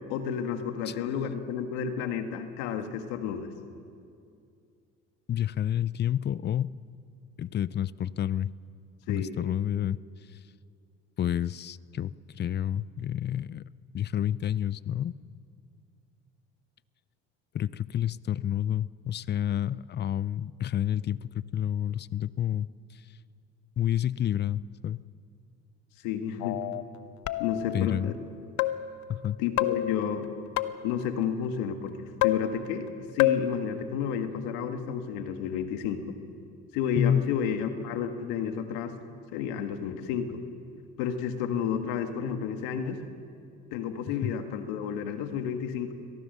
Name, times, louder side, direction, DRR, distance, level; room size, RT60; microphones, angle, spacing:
voice 1, 0.1-3.5 9.1-9.3 26.0-26.6 27.4-28.1 29.4-30.3 30.8-36.2 36.7-39.0 39.3-40.4 41.0-43.0 43.7-45.9, left 8 dB, 85° left, 7 dB, 1.8 m, -31 dB
voice 2, 5.3-6.7 7.4-8.5 9.1-10.0 10.3-10.4 11.2-13.6 13.9-15.1 17.5-23.0 23.8-25.0 27.7-28.1 29.1-29.4 36.9-37.3 44.2-44.3, left 10 dB, 35° left, 20 dB, 0.5 m, -29 dB
sound 1, 26.4-26.8 27.3-27.8 28.6-29.0 29.6-31.0 32.2-32.9 33.2-33.6, left 13 dB, 70° left, 0.9 m, -28 dB
24.0 x 18.0 x 6.7 m, 2.4 s
supercardioid pair, 90°, 30 cm